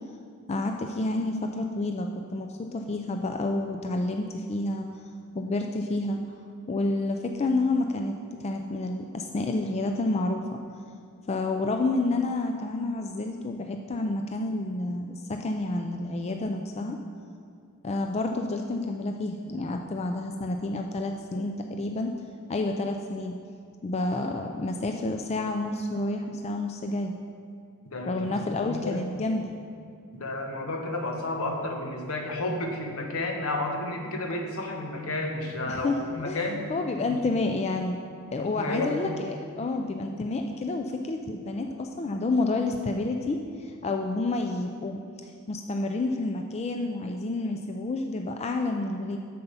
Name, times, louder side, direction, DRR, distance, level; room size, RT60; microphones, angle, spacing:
voice 1, 0.5-4.9 5.3-6.2 6.7-10.6 11.3-17.0 17.8-22.1 22.5-23.4 23.8-27.1 28.1-29.5 35.7-38.0 38.3-45.0 45.5-49.2, left 2 dB, 30° left, 4 dB, 0.4 m, -29 dB
voice 2, 28.5-29.0 30.1-36.6 37.1-37.2 38.4-39.2, left 2 dB, 70° left, 3 dB, 1.1 m, -31 dB
7.6 x 7.0 x 5.5 m, 2.4 s
head